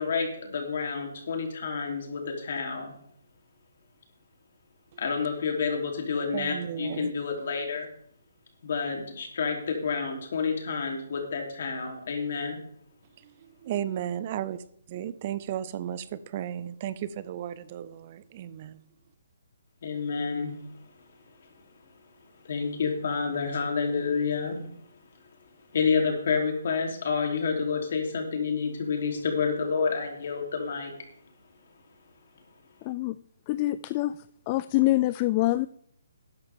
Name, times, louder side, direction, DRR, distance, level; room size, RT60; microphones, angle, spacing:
voice 1, 0.0-2.9 5.0-7.9 8.6-12.6 19.8-20.5 22.4-24.6 25.7-30.9, left 5 dB, 55° left, 3.5 m, -29 dB
voice 2, 6.3-7.1 13.6-14.6 14.9-18.8, right 10 dB, 35° right, 0.6 m, -34 dB
voice 3, 32.8-33.2 33.5-35.7, left 17 dB, 25° left, 0.3 m, -26 dB
12.5 x 10.5 x 3.7 m
hypercardioid pair, 155°, 0 cm